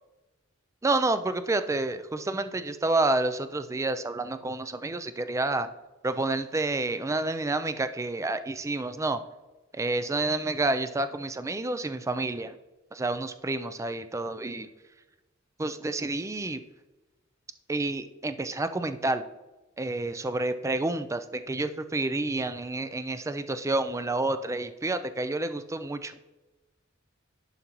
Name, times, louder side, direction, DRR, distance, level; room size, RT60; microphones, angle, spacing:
voice 1, 0.8-5.7 6.0-9.2 9.7-12.6 12.9-14.7 15.6-16.6 17.7-19.2 19.8-26.3, right 2 dB, 15° right, 11 dB, 0.3 m, -29 dB
11.0 x 5.2 x 3.0 m, 1.1 s
head